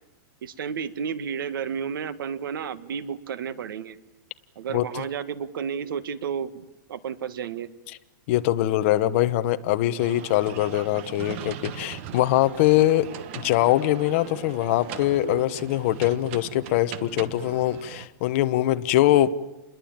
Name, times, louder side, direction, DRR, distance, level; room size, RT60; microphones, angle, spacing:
voice 1, 0.4-4.0 4.6-7.7, right 7 dB, 85° right, 14 dB, 1.8 m, -32 dB
voice 2, 8.3-13.1 13.3-19.3, left 14 dB, 35° left, 10 dB, 1.1 m, -22 dB
sound 1, 10.0-18.1, right 10 dB, 35° right, 1.3 m, -39 dB
29.0 x 21.5 x 8.9 m, 0.94 s
supercardioid pair, 175°, 11 cm